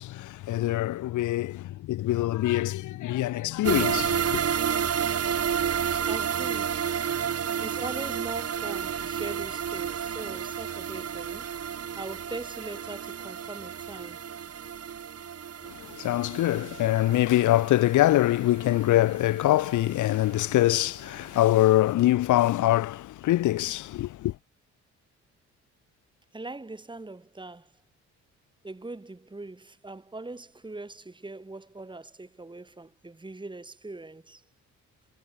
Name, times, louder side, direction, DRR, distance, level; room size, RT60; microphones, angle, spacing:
voice 1, 0.0-4.4 15.7-24.3, left 15 dB, 80° left, 1.2 m, -24 dB
sound 1, 3.6-20.7 21.1-21.2 21.6-21.7, right 8 dB, 55° right, 5.2 m, -31 dB
voice 2, 5.9-6.9 7.6-11.5 12.0-14.2 26.3-27.7 28.6-34.4, right 2 dB, 15° right, 4.3 m, -41 dB
cardioid pair, 90°, 30 cm